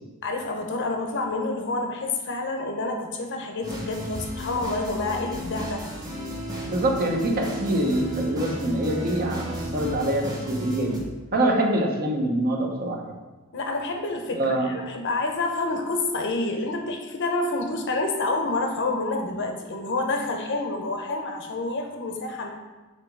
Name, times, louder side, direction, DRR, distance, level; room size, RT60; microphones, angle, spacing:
voice 1, 0.2-5.8 13.5-22.5, left 2 dB, 60° left, 3 dB, 0.8 m, -28 dB
sound 1, 3.6-11.0, equal, 20° right, 1.1 m, -33 dB
voice 2, 6.7-13.2 14.4-14.7, right 1 dB, 45° right, 1 dB, 0.9 m, -25 dB
7.6 x 3.0 x 4.6 m, 1.2 s
head